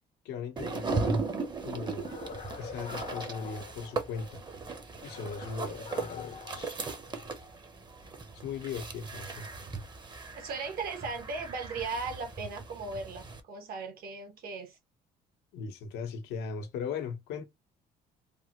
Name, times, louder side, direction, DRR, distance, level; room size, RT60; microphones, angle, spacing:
voice 1, 0.2-1.2 1.6-2.1 2.6-4.4 5.0-6.8 8.3-9.5 15.5-17.5, left 6 dB, 85° left, 1.0 m, -38 dB
sound 1, 0.6-13.4, right 4 dB, 25° right, 0.7 m, -37 dB
sound 2, 2.0-4.4 5.0-7.4, left 5 dB, 45° left, 0.6 m, -45 dB
voice 2, 10.4-14.8, right 4 dB, 60° right, 1.0 m, -37 dB
3.3 x 2.1 x 2.9 m
cardioid pair, 110°, 17 cm